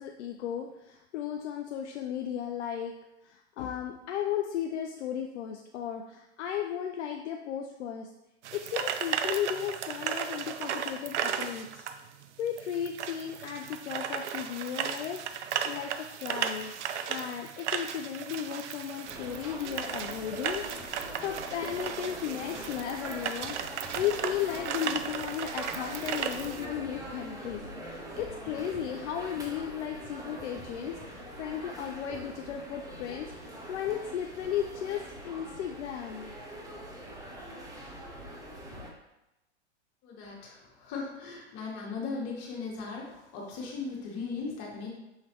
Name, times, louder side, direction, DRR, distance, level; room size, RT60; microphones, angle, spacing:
voice 1, 0.0-2.9 3.2-8.1 8.5-11.8 12.4-16.7 17.1-20.7 20.9-36.3, left 9 dB, 75° left, 3 dB, 0.5 m, -35 dB
sound 1, 8.4-26.6, right 8 dB, 80° right, 0.5 m, -35 dB
sound 2, 19.0-38.9, right 1 dB, 10° right, 0.6 m, -43 dB
voice 2, 40.0-44.9, left 4 dB, 45° left, -3 dB, 1.6 m, -38 dB
5.8 x 3.1 x 2.9 m, 0.93 s
hypercardioid pair, 115°, 35 cm